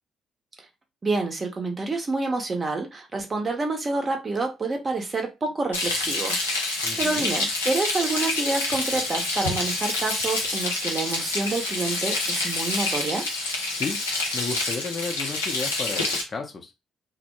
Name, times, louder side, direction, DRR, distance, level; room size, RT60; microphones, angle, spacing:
voice 1, 1.0-6.4 7.0-13.2, right 3 dB, 35° right, 4 dB, 0.7 m, -28 dB
Frying (food), 5.7-16.2, left 2 dB, 85° left, 0.5 m, -27 dB
voice 2, 6.8-7.3 13.7-14.0 14.3-16.7, left 4 dB, 40° left, 3 dB, 0.6 m, -33 dB
2.1 x 2.0 x 2.9 m, 0.24 s
figure-of-eight pair, 45°, 0 cm